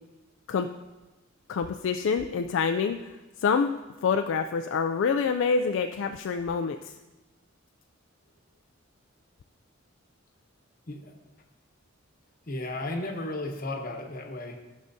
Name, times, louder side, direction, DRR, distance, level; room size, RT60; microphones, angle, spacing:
voice 1, 1.5-3.0 3.4-6.9, left 5 dB, 70° left, 6 dB, 0.3 m, -26 dB
voice 2, 12.5-14.6, left 2 dB, 45° left, 3 dB, 1.0 m, -34 dB
14.0 x 6.4 x 2.7 m, 1.1 s
head